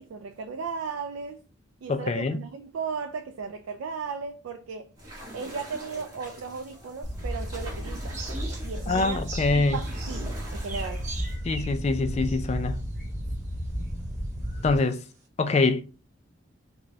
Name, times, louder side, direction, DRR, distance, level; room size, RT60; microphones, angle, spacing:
voice 1, 0.0-1.5 1.8-4.9 5.3-8.2 8.6-9.2 9.5-11.1, right 5 dB, 85° right, 0.4 m, -36 dB
voice 2, 1.9-2.4 8.9-9.8 11.4-12.8 14.6-15.0 15.4-15.8, left 3 dB, 35° left, 0.3 m, -24 dB
sound 1, 5.0-11.3, right 1 dB, 20° right, 1.4 m, -43 dB
sound 2, 7.0-14.8, equal, ahead, 1.2 m, -33 dB
sound 3, 8.1-13.3 13.8-13.9 14.4-14.9, right 4 dB, 40° right, 0.7 m, -42 dB
5.1 x 2.2 x 2.7 m
head